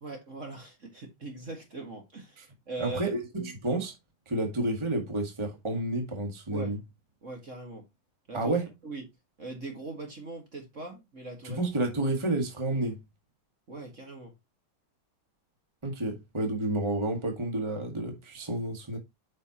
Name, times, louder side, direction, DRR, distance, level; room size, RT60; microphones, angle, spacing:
voice 1, 0.0-3.1 6.5-6.8 7.2-7.9 8.3-8.6 8.8-9.1 9.4-11.6 13.7-14.3, right 3 dB, 40° right, 2.1 m, -41 dB
voice 2, 2.8-4.0 4.3-6.8 8.3-8.7 11.4-13.0 15.8-19.0, right 2 dB, 15° right, 1.8 m, -30 dB
9.2 x 5.5 x 3.0 m
omnidirectional pair, 2.2 m